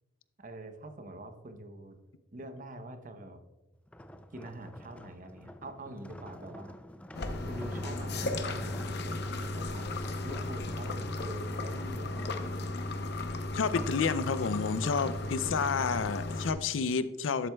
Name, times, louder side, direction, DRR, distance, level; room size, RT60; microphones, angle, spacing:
voice 1, 0.4-2.0 2.3-3.4 4.3-6.8 7.5-9.9 10.2-12.7 13.5-13.8 14.8-15.9, right 1 dB, 45° right, 7 dB, 0.8 m, -45 dB
sound 1, 3.9-14.1 14.5-14.8, left 1 dB, 5° left, 0.3 m, -49 dB
sound 2, 7.1-16.5, left 2 dB, 60° left, 0.7 m, -35 dB
voice 2, 13.5-17.5, left 5 dB, 85° left, 13 dB, 0.5 m, -30 dB
11.5 x 7.6 x 2.3 m, 1.1 s
head